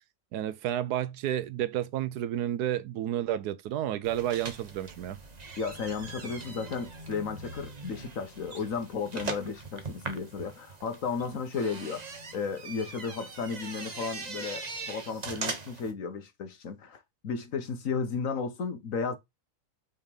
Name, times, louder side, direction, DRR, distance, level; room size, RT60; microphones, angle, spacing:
voice 1, 0.3-5.2, right 12 dB, 80° right, 1.1 m, -31 dB
sound 1, 4.0-15.9, right 4 dB, 30° right, 0.9 m, -41 dB
voice 2, 5.6-12.0 12.3-19.1, left 5 dB, 60° left, 1.3 m, -34 dB
5.6 x 3.6 x 5.2 m
omnidirectional pair, 1.7 m